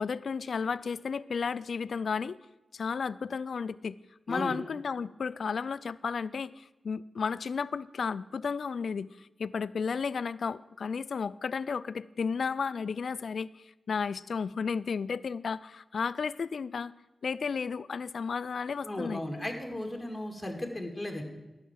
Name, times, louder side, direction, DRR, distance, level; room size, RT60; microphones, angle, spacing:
voice 1, 0.0-2.4 2.7-4.0 4.3-16.9 17.2-19.2, left 5 dB, 75° left, 17 dB, 0.3 m, -33 dB
voice 2, 18.8-21.2, left 1 dB, 15° left, 2 dB, 2.2 m, -35 dB
11.5 x 5.7 x 7.5 m, 1.0 s
cardioid pair, 70°, 0 cm